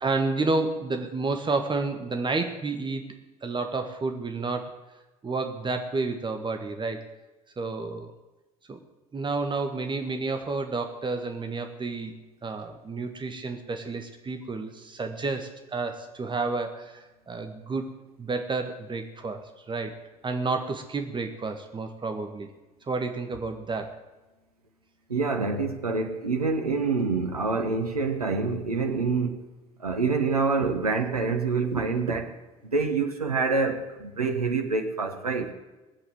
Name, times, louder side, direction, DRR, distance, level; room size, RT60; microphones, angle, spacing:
voice 1, 0.0-3.1 3.4-4.8 5.2-7.2 7.6-8.1 8.7-8.8 9.1-20.0 20.2-22.5 22.9-24.0, right 3 dB, 25° right, 6 dB, 1.6 m, -30 dB
voice 2, 25.1-29.4 29.8-32.3 32.6-35.5, right 4 dB, 85° right, 5 dB, 1.2 m, -26 dB
19.5 x 8.4 x 7.9 m, 1.1 s
figure-of-eight pair, 60°, 19 cm